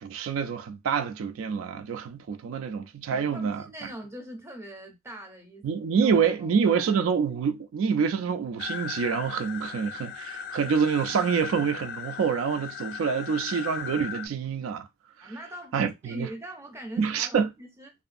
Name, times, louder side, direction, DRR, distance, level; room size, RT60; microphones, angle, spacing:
voice 1, 0.0-3.6 5.6-14.9 15.2-15.3 15.7-16.3 17.0-17.5, right 6 dB, 90° right, 0.3 m, -27 dB
voice 2, 3.1-5.7 6.0-6.1 6.4-7.0 15.2-17.9, right 1 dB, 15° right, 0.5 m, -42 dB
sound 1, 8.6-14.3, left 8 dB, 50° left, 0.3 m, -37 dB
2.6 x 2.3 x 2.4 m
head